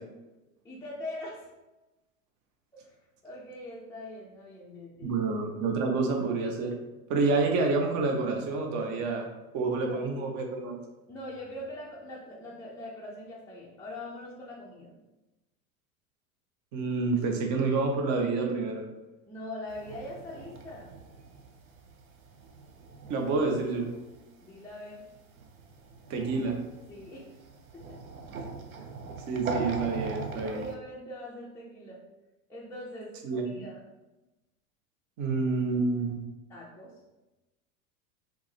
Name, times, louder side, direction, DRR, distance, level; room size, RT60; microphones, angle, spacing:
voice 1, 0.6-1.5 2.7-3.0 3.2-5.1 9.6-10.1 11.1-15.0 19.3-20.9 24.4-25.1 26.9-27.4 27.7-28.0 30.4-32.0 32.5-33.8 36.5-37.0, left 1 dB, 10° left, -6 dB, 0.3 m, -42 dB
voice 2, 5.0-6.8 7.1-9.2 9.5-10.8 16.7-18.8 23.1-23.9 26.1-26.6 28.3-28.4 29.3-30.6 33.2-33.7 35.2-36.2, right 3 dB, 45° right, 3 dB, 0.7 m, -28 dB
sound 1, 19.7-24.2 24.5-30.8, right 4 dB, 90° right, 0.5 m, -40 dB
3.4 x 2.0 x 3.1 m, 1.1 s
hypercardioid pair, 90°, 41 cm